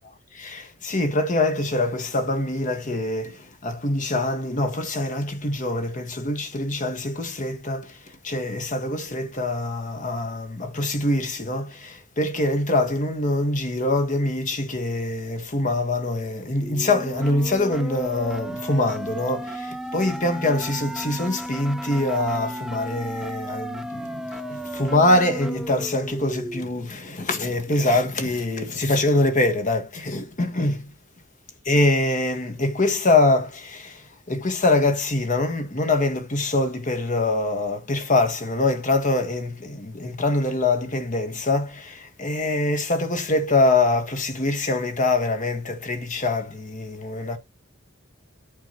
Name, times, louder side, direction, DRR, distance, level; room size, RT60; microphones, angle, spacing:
voice 1, 0.3-30.9 31.6-47.4, left 2 dB, 40° left, 1.6 m, -24 dB
sound 1, 16.6-26.6, equal, ahead, 0.5 m, -34 dB
8.5 x 5.4 x 3.0 m
head